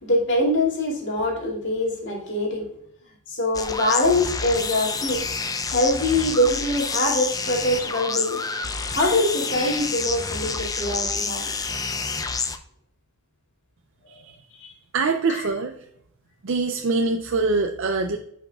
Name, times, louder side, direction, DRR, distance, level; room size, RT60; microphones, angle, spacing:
voice 1, 0.0-2.7 3.3-5.2 5.7-8.4 8.9-11.8 14.6-14.7 15.3-15.5, left 1 dB, 55° left, -3 dB, 2.5 m, -23 dB
sound 1, 3.5-12.6, left 4 dB, 15° left, 0.4 m, -28 dB
voice 2, 14.9-15.7 16.4-18.2, right 3 dB, 60° right, 4 dB, 0.5 m, -23 dB
10.0 x 5.5 x 2.4 m, 0.73 s
head